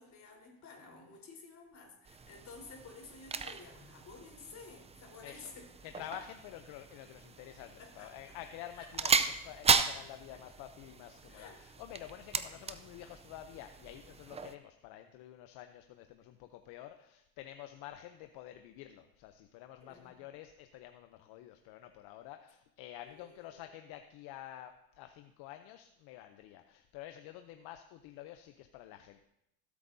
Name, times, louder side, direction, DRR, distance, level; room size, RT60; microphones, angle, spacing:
voice 1, 0.0-5.7 7.8-8.4 8.7-8.9 10.3-10.4 11.3-11.6 19.8-20.1 23.0-23.6, left 4 dB, 40° left, -1 dB, 4.0 m, -52 dB
sound 1, 2.1-14.6, right 5 dB, 15° right, 0.5 m, -36 dB
voice 2, 5.2-5.5 5.8-29.2, left 12 dB, 65° left, 8 dB, 0.8 m, -49 dB
16.5 x 8.3 x 2.7 m, 0.84 s
supercardioid pair, 105°, 41 cm